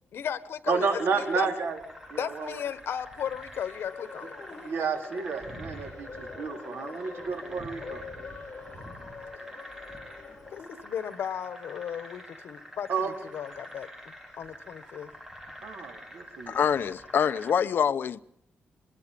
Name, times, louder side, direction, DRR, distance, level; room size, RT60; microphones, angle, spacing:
voice 1, 0.1-1.5 2.2-4.6 8.7-9.4 10.5-13.9 14.4-15.1, left 9 dB, 85° left, 1.4 m, -36 dB
sound 1, 0.7-17.5, equal, 10° right, 4.3 m, -46 dB
voice 2, 0.7-1.8 2.1-2.6 4.6-8.0 12.9-13.1 15.6-16.6, right 5 dB, 80° right, 4.1 m, -31 dB
sound 2, 3.6-10.7, left 4 dB, 30° left, 7.0 m, -45 dB
voice 3, 16.5-18.2, left 7 dB, 65° left, 0.8 m, -25 dB
25.5 x 21.0 x 5.4 m
wide cardioid pair, 140°, 4 cm